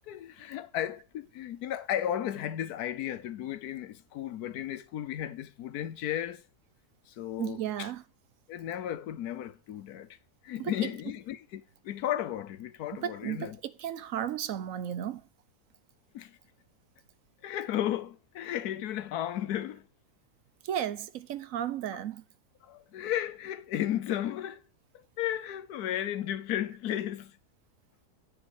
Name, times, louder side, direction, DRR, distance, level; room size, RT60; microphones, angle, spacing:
voice 1, 0.1-6.4 7.1-7.9 8.5-10.2 10.4-13.6 16.1-16.4 17.4-19.9 22.6-24.6 24.9-27.4, left 11 dB, 85° left, 1.3 m, -34 dB
voice 2, 7.4-8.0 10.6-10.7 12.9-15.2 20.6-22.2, right 10 dB, 70° right, 1.0 m, -34 dB
9.7 x 4.8 x 6.4 m
omnidirectional pair, 1.6 m